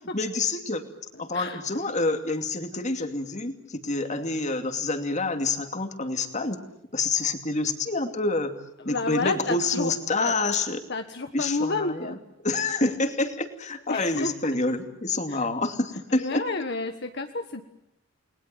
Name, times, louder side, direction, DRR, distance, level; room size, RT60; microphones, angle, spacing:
voice 1, 0.1-0.8 1.2-6.6 6.9-8.6 8.8-10.8 11.3-12.2 12.4-16.5, left 3 dB, 35° left, 7 dB, 2.6 m, -27 dB
voice 2, 8.8-9.9 10.2-10.3 10.9-12.2 13.9-14.6 15.3-15.4 16.2-17.6, left 3 dB, 55° left, 6 dB, 1.5 m, -30 dB
30.0 x 21.0 x 9.1 m, 0.82 s
head